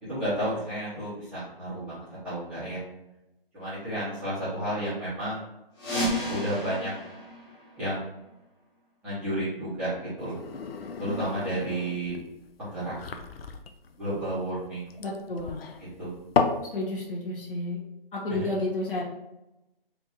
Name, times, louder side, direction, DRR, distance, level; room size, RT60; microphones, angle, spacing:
voice 1, 0.0-2.8 3.5-5.4 5.9-6.9 7.8-8.1 9.0-10.4 11.0-12.2 12.6-12.9 14.0-14.9 16.0-16.1 18.3-18.5, right 1 dB, 5° right, -17 dB, 0.6 m, -32 dB
sound 1, 5.7-8.4, equal, 25° left, 0.9 m, -33 dB
sound 2, 10.2-16.7, left 5 dB, 80° left, 0.5 m, -33 dB
voice 2, 15.0-15.6 16.7-17.8 18.1-19.0, left 2 dB, 60° left, -4 dB, 1.4 m, -31 dB
3.3 x 3.0 x 2.7 m, 0.94 s
hypercardioid pair, 165°, 30 cm